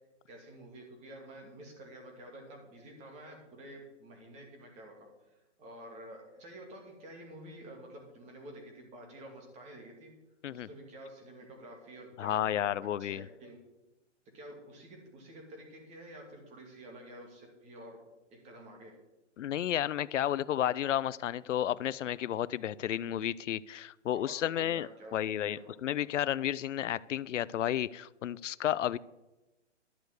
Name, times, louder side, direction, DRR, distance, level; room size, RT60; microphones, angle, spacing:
voice 1, 0.3-10.1 10.5-12.7 13.0-13.6 14.3-18.0 18.3-19.0 24.1-25.8 26.0-26.1, right 1 dB, 20° right, 2.6 m, -50 dB
voice 2, 12.2-13.3 19.4-29.0, left 11 dB, 80° left, 0.5 m, -32 dB
12.0 x 6.7 x 7.9 m
hypercardioid pair, 155°, 37 cm